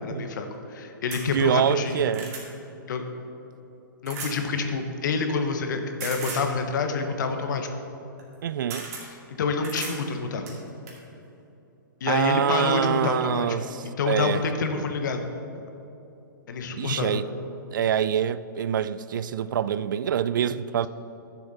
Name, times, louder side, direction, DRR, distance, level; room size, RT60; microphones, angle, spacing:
voice 1, 0.0-2.1 2.9-3.0 4.0-7.7 9.4-10.4 12.0-13.6 13.8-15.2 16.5-17.2, left 4 dB, 60° left, 1.1 m, -27 dB
sound 1, 1.1-1.3 1.8-2.5 4.1-4.4 6.0-6.5 8.2-8.3 8.7-9.1 9.6-10.0 10.5-11.0 12.0-12.1 12.5-12.6, right 4 dB, 45° right, 2.3 m, -36 dB
voice 2, 1.3-2.3 8.4-8.9 12.1-14.4 14.7-14.8 16.7-17.3 17.7-20.9, right 9 dB, 65° right, 0.4 m, -25 dB
11.5 x 7.1 x 4.2 m
hypercardioid pair, 145°, 11 cm